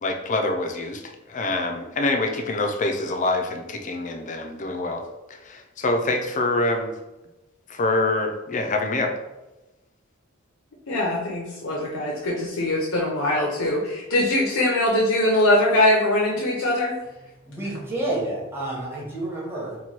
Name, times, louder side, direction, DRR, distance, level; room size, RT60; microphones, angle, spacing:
voice 1, 0.0-5.0 5.3-6.9 7.7-9.1, left 2 dB, 40° left, 4 dB, 0.4 m, -25 dB
voice 2, 10.9-16.9, left 1 dB, 75° left, -4 dB, 0.7 m, -22 dB
voice 3, 17.4-19.8, right 1 dB, 10° right, -5 dB, 0.9 m, -29 dB
3.0 x 2.2 x 4.2 m, 1.0 s
head